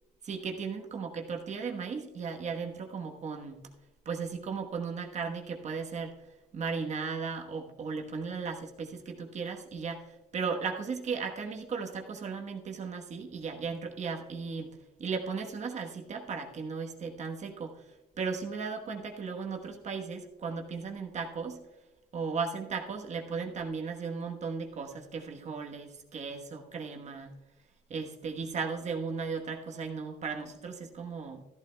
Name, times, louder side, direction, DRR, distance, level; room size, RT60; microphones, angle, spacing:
voice 1, 0.2-3.6 4.0-6.2 6.5-21.6 22.1-27.4 27.9-31.4, right 5 dB, 45° right, 3 dB, 1.2 m, -36 dB
14.0 x 13.0 x 2.3 m, 1.1 s
cardioid pair, 110°, 17 cm